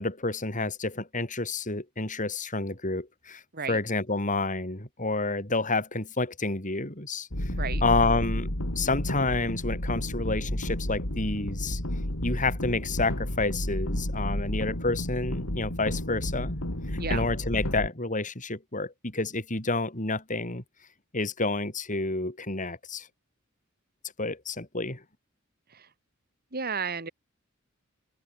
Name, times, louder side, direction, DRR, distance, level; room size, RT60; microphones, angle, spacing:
voice 1, 0.0-3.4 3.7-7.3 7.8-8.5 8.7-11.8 12.2-16.6 16.9-20.6 21.1-23.1 24.2-25.0, left 3 dB, 40° left, 4.9 m, -29 dB
sound 1, 7.3-17.9, left 1 dB, 85° left, 4.9 m, -31 dB
voice 2, 7.5-7.8 17.0-17.3 25.7-25.9 26.5-27.1, right 5 dB, 50° right, 3.1 m, -33 dB
open air
head